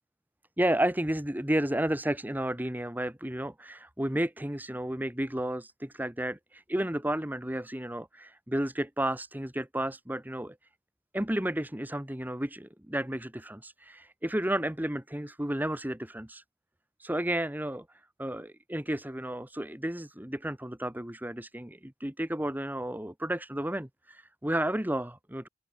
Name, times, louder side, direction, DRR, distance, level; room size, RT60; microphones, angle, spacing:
voice 1, 0.6-10.5 11.1-16.4 17.0-17.8 18.2-25.5, right 1 dB, 10° right, 1.4 m, -32 dB
head